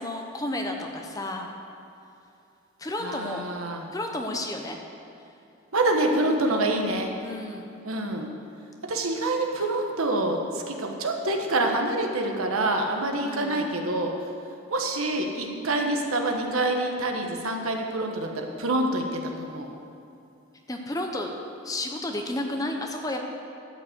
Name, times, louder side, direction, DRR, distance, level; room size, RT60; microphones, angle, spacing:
voice 1, 0.0-1.5 2.8-3.4 3.9-4.8 7.2-7.7 13.2-13.7 20.7-21.3 21.6-23.2, left 1 dB, 15° left, 3 dB, 0.8 m, -32 dB
voice 2, 3.0-3.8 5.7-7.1 7.8-8.3 8.9-14.1 14.7-19.7, right 2 dB, 85° right, 2 dB, 1.3 m, -26 dB
12.5 x 5.5 x 8.0 m, 2.6 s
head